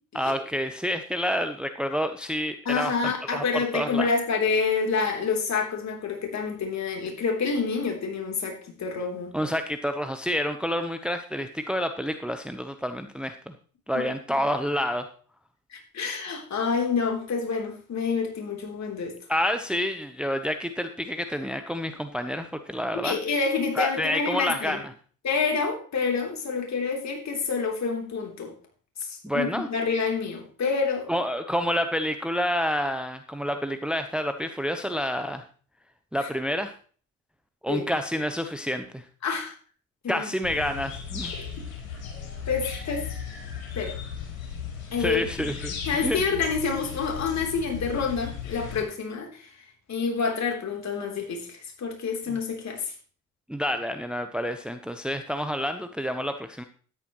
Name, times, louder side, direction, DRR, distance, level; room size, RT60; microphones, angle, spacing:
voice 1, 0.1-4.1 9.3-13.5 13.9-15.1 19.3-23.2 23.8-24.9 29.2-29.7 31.1-35.4 36.1-36.7 37.6-39.1 40.1-41.3 45.0-45.7 46.0-46.2 52.3-52.4 53.5-56.6, equal, ahead, 8 dB, 0.9 m, -28 dB
voice 2, 2.7-9.3 13.9-14.1 15.7-19.2 23.0-24.8 25.2-28.5 29.0-31.1 36.2-36.3 37.7-37.9 39.2-39.5 40.0-40.3 41.6-41.7 42.5-43.1 43.7-44.0 44.9-45.2 45.9-52.9, left 5 dB, 45° left, 3 dB, 3.5 m, -28 dB
sound 1, 40.4-48.8, left 7 dB, 85° left, 3.9 m, -36 dB
13.0 x 10.5 x 3.1 m, 0.42 s
hypercardioid pair, 60°, 40 cm